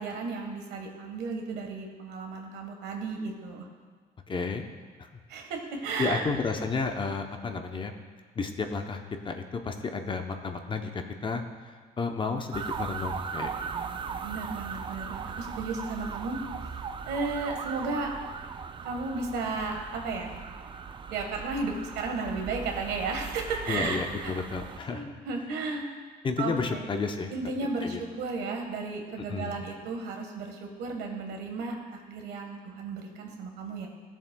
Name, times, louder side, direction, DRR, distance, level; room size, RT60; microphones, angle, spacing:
voice 1, 0.0-3.6 5.3-6.2 14.2-16.4 17.0-18.1 18.8-20.3 21.1-24.4 24.8-25.9 26.4-26.8 27.3-31.7 32.1-33.9, right 3 dB, 80° right, 2 dB, 1.4 m, -34 dB
voice 2, 4.3-4.7 6.0-7.9 8.4-13.5 13.8-13.9 23.7-25.2 26.2-27.3 27.8-28.0 29.3-29.6, left 4 dB, 30° left, 5 dB, 0.7 m, -32 dB
sound 1, 12.5-24.8, right 6 dB, 30° right, 0.4 m, -38 dB
15.5 x 7.1 x 2.2 m, 1.6 s
cardioid pair, 110°, 17 cm